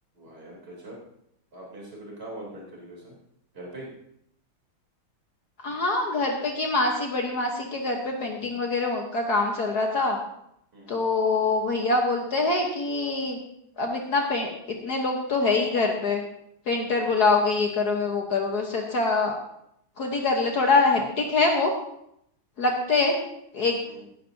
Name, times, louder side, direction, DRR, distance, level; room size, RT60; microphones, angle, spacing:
voice 1, 0.1-1.0 1.5-3.1 3.5-3.9 10.7-11.0 16.9-17.1 23.9-24.0, right 1 dB, 30° right, -3 dB, 3.8 m, -42 dB
voice 2, 5.6-10.2 10.9-13.4 13.8-14.5 14.8-16.2 16.7-19.4 20.0-21.7 22.6-23.1 23.5-23.8, left 3 dB, 55° left, 1 dB, 1.6 m, -24 dB
17.5 x 10.0 x 2.8 m, 0.76 s
omnidirectional pair, 2.2 m